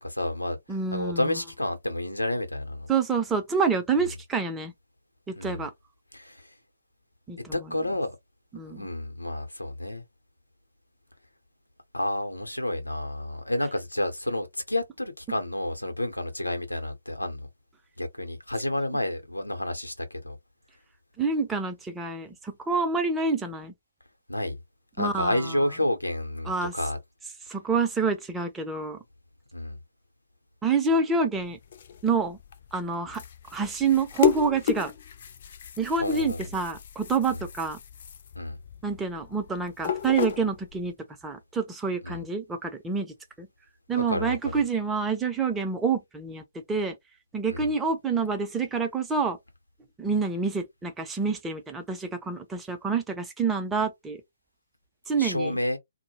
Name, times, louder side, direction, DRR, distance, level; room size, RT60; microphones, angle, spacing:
voice 1, 0.0-0.6 0.9-2.9 4.0-4.1 5.4-5.6 6.1-6.5 7.5-8.2 8.7-10.0 11.9-17.5 18.0-20.4 24.3-24.6 25.0-27.0 29.5-29.8 36.0-36.5 37.3-37.4 38.4-38.6 42.0-42.2 43.9-44.6 47.5-47.7 55.2-55.8, left 1 dB, 90° left, 0.7 m, -30 dB
voice 2, 0.7-1.4 2.9-4.7 5.3-5.7 7.3-7.7 8.5-8.8 21.2-23.7 25.0-25.6 26.5-26.7 27.5-29.0 30.6-31.6 32.0-32.4 32.7-33.2 33.5-34.9 35.8-37.8 38.8-40.9 41.2-43.5 43.9-46.9 47.3-49.4 50.0-54.2 55.1-55.5, right 4 dB, 10° right, 0.5 m, -27 dB
sound 1, 31.3-40.9, left 10 dB, 45° left, 0.4 m, -33 dB
2.2 x 2.0 x 3.0 m
figure-of-eight pair, 135°, 0 cm